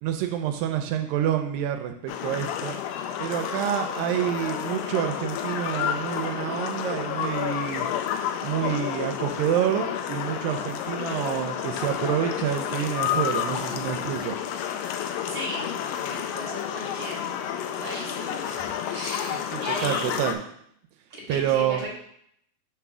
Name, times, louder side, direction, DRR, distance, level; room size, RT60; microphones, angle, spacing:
voice 1, 0.0-2.8 3.2-7.9 8.4-14.4 19.2-20.4 21.3-21.9, right 10 dB, 85° right, 6 dB, 2.2 m, -28 dB
sound 1, 2.1-20.3, left 9 dB, 90° left, 2.3 m, -30 dB
voice 2, 15.3-17.3 17.8-20.2 21.1-21.9, equal, 45° right, -5 dB, 1.3 m, -37 dB
6.0 x 3.4 x 5.9 m, 0.71 s
omnidirectional pair, 4.0 m